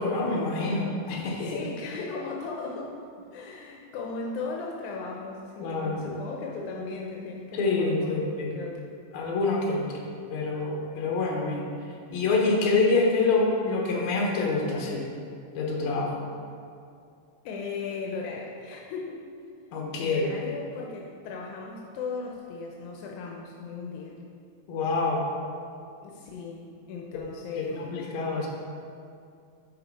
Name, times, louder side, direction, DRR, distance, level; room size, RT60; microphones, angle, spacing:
voice 1, 0.0-1.6 5.6-6.1 7.5-8.6 9.1-10.0 10.3-11.7 12.1-15.1 15.5-16.2 19.7-20.3 24.7-25.3 27.1-27.2 27.6-28.5, left 3 dB, 70° left, -1 dB, 2.3 m, -26 dB
voice 2, 1.5-8.8 17.5-19.2 20.0-24.2 26.0-28.0, left 4 dB, 85° left, 0 dB, 2.1 m, -37 dB
10.0 x 4.5 x 4.1 m, 2.4 s
omnidirectional pair, 3.5 m